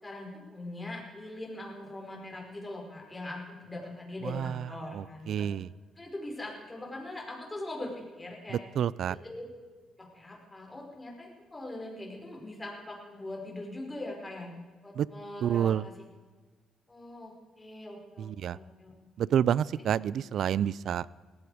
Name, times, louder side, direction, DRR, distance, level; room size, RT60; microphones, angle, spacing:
voice 1, 0.0-5.5 6.0-8.6 9.1-9.4 10.1-14.5 14.8-15.9 16.9-18.9, left 1 dB, 20° left, -1 dB, 5.3 m, -41 dB
voice 2, 4.2-5.7 8.5-9.2 14.9-15.1 15.4-15.9 18.2-18.6 19.2-21.1, right 9 dB, 70° right, 22 dB, 0.4 m, -29 dB
18.5 x 15.0 x 5.0 m, 1.4 s
cardioid pair, 90°, 0 cm